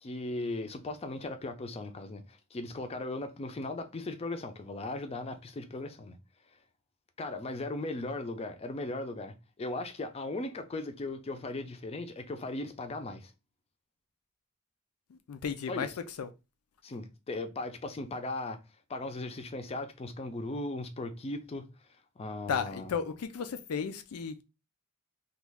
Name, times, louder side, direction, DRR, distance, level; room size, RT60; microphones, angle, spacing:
voice 1, 0.0-6.2 7.2-13.3 15.7-16.0 16.8-18.6 18.9-21.7 22.2-22.9, left 2 dB, 30° left, 0.4 m, -37 dB
voice 2, 15.3-15.9 16.2-16.3 22.5-24.4, left 6 dB, 90° left, 0.4 m, -34 dB
3.1 x 2.3 x 3.4 m
head